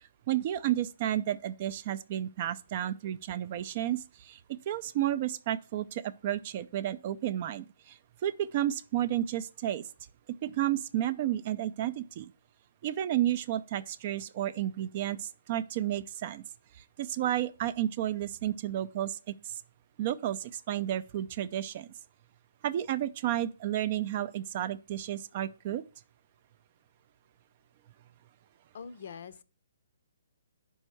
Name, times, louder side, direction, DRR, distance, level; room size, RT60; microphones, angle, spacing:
voice 1, 0.3-4.4 4.7-9.8 10.4-12.3 12.8-16.4 17.0-19.5 20.0-21.9 22.6-25.8, right 12 dB, 40° right, 0.4 m, -32 dB
voice 2, 28.7-29.4, left 6 dB, 60° left, 0.5 m, -43 dB
5.4 x 4.4 x 6.2 m
hypercardioid pair, 155°, 0 cm